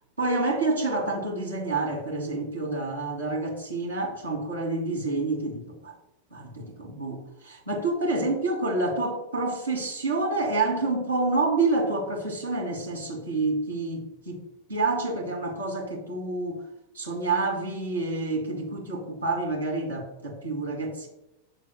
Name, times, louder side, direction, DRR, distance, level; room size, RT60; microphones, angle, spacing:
voice 1, 0.2-5.9 6.3-16.6 16.9-21.1, right 3 dB, 80° right, -1 dB, 2.5 m, -28 dB
11.0 x 7.6 x 2.3 m, 0.86 s
figure-of-eight pair, 90°, 0 cm